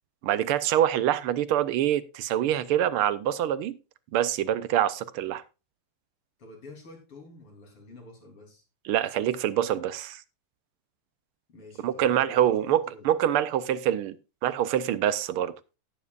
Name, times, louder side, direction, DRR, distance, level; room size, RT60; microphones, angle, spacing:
voice 1, 0.2-3.8 4.1-5.4 8.8-10.2 11.8-14.2 14.4-15.5, right 11 dB, 80° right, 1.6 m, -25 dB
voice 2, 6.4-8.6 11.5-13.1, left 2 dB, 80° left, 4.3 m, -48 dB
18.0 x 7.2 x 2.5 m
omnidirectional pair, 2.4 m